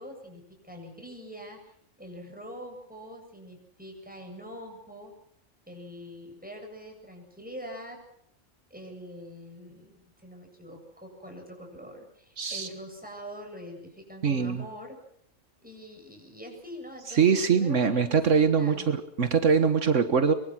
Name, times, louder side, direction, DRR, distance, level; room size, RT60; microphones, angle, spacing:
voice 1, 0.0-5.1 5.7-8.0 8.7-15.0 15.6-17.2 17.5-18.9, equal, 5° right, 2 dB, 7.8 m, -44 dB
voice 2, 12.4-12.7 14.2-14.6 17.1-20.3, right 6 dB, 80° right, 9 dB, 1.7 m, -23 dB
24.0 x 23.5 x 6.2 m, 0.69 s
omnidirectional pair, 1.3 m